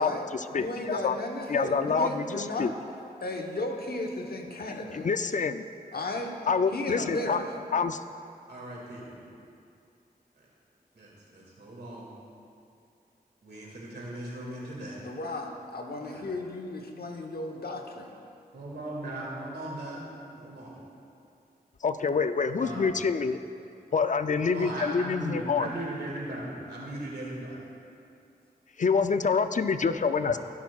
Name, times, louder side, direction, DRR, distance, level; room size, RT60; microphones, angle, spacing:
voice 1, 0.0-1.2 1.5-2.7 4.7-5.6 6.5-7.4 7.7-8.0 21.8-23.4 23.9-25.7 28.8-30.4, left 5 dB, 50° left, 10 dB, 0.4 m, -27 dB
voice 2, 0.6-2.7 3.2-5.1 5.9-6.3 6.7-7.6 15.0-18.1, left 2 dB, 65° left, 2 dB, 1.0 m, -34 dB
voice 3, 8.5-9.2 10.4-10.5 10.9-12.1 13.4-15.0 16.0-16.3 18.5-20.0 20.4-20.8 22.6-23.0 24.4-27.6 30.2-30.4, right 1 dB, 85° right, -4 dB, 2.1 m, -38 dB
17.5 x 6.1 x 2.4 m, 2.5 s
cardioid pair, 45°, 17 cm